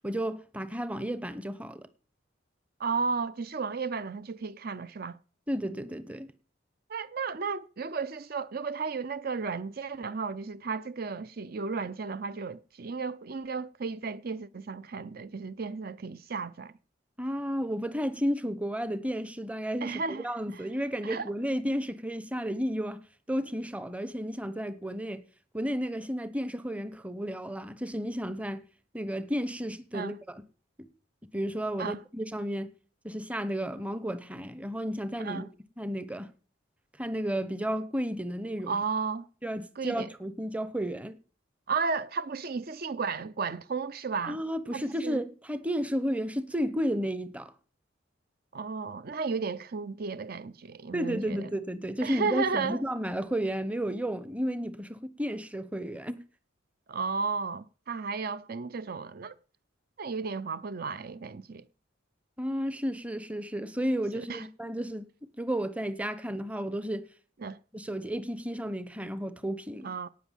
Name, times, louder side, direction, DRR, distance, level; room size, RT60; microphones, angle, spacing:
voice 1, 0.0-1.9 5.5-6.3 17.2-23.0 23.3-25.2 25.5-28.6 28.9-30.4 31.3-32.7 33.0-35.5 35.8-36.3 37.0-38.8 39.4-41.2 44.2-47.5 50.9-56.2 62.4-65.1 65.4-67.1 67.7-69.9, equal, 5° right, 0.8 m, -32 dB
voice 2, 2.8-5.2 6.9-16.7 19.8-20.7 21.0-21.3 29.9-30.2 31.8-32.0 35.2-35.5 38.7-39.3 39.8-40.1 41.7-44.4 44.7-45.2 48.5-51.5 52.0-52.8 56.9-59.3 60.0-61.6 64.1-64.5 67.4-67.6 69.8-70.1, right 5 dB, 50° right, 0.6 m, -34 dB
18.0 x 6.1 x 7.3 m
head